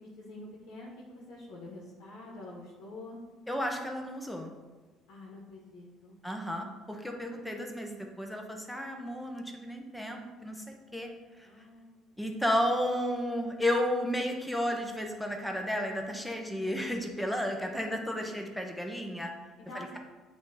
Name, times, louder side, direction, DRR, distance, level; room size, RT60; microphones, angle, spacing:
voice 1, 0.2-3.2 5.1-6.2 11.4-12.3 18.2-18.8 19.7-20.0, left 2 dB, 75° left, -4 dB, 1.1 m, -47 dB
voice 2, 3.5-4.5 6.2-11.1 11.4-11.5 12.2-19.3 19.7-20.0, equal, ahead, 2 dB, 1.0 m, -33 dB
8.2 x 2.8 x 4.1 m, 1.3 s
supercardioid pair, 85°, 0 cm